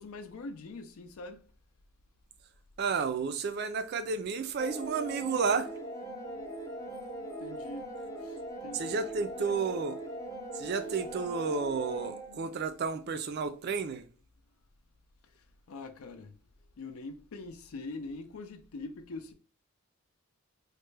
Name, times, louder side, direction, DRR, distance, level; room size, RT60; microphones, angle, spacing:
voice 1, 0.0-1.4 7.4-7.9 8.2-9.0 15.7-16.4 16.8-19.3, left 3 dB, 80° left, 0.5 m, -43 dB
voice 2, 2.8-5.7 8.7-10.0 10.5-14.1, right 5 dB, 50° right, 0.4 m, -32 dB
sound 1, 4.6-12.6, right 1 dB, 15° left, 0.5 m, -41 dB
3.2 x 2.1 x 3.2 m
head